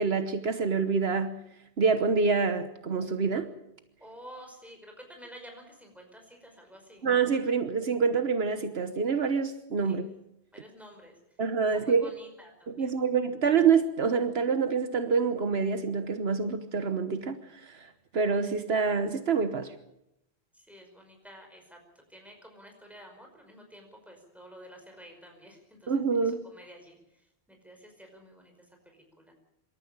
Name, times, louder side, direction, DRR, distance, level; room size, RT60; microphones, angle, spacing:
voice 1, 0.0-1.4 1.8-3.5 7.0-10.1 11.4-12.1 12.8-19.7 25.9-26.4, right 5 dB, 75° right, 1.4 m, -26 dB
voice 2, 4.0-7.1 9.8-10.1 10.5-11.4 11.7-13.0 20.5-21.8 22.1-29.3, equal, ahead, 5.3 m, -51 dB
25.5 x 13.5 x 8.7 m
omnidirectional pair, 1.1 m